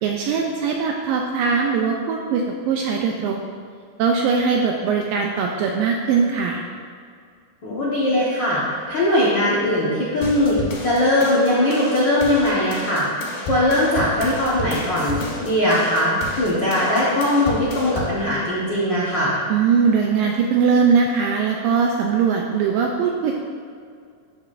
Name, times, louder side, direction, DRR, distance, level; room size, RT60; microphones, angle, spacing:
voice 1, 0.0-3.5 4.0-6.7 19.5-23.4, right 5 dB, 85° right, 1 dB, 2.0 m, -20 dB
voice 2, 7.6-13.1 13.4-19.4, left 1 dB, 85° left, -8 dB, 1.0 m, -20 dB
sound 1, 10.2-18.2, left 2 dB, 65° left, 2.8 m, -32 dB
12.0 x 7.3 x 2.6 m, 2.2 s
omnidirectional pair, 4.5 m